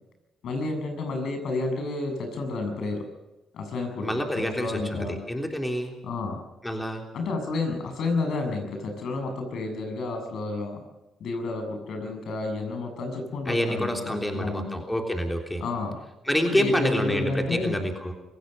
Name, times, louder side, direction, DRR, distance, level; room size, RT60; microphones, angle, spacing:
voice 1, 0.4-3.1 3.5-5.2 6.0-6.4 7.1-10.8 11.2-14.7 15.6-16.0 16.5-17.7, left 2 dB, 70° left, 4 dB, 7.0 m, -30 dB
voice 2, 4.0-6.0 6.6-7.1 13.4-15.6 16.2-18.1, left 1 dB, 10° left, 3 dB, 3.4 m, -27 dB
24.5 x 17.0 x 6.8 m, 1.1 s
cardioid pair, 90°, 0 cm